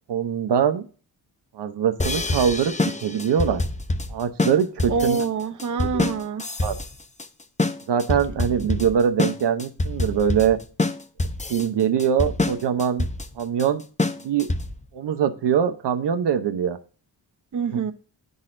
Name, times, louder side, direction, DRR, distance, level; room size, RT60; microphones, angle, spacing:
voice 1, 0.1-0.8 1.5-3.6 4.1-5.2 5.8-6.0 6.6-6.8 7.9-10.6 11.5-13.1 13.4-13.8 14.2-14.5 14.9-16.8 17.7-17.8, right 8 dB, 75° right, 9 dB, 0.8 m, -23 dB
sound 1, 2.0-14.9, left 2 dB, 15° left, 0.7 m, -26 dB
voice 2, 4.9-6.4 17.5-17.9, right 5 dB, 45° right, 9 dB, 0.7 m, -25 dB
12.0 x 4.0 x 2.5 m, 0.38 s
cardioid pair, 70°, 41 cm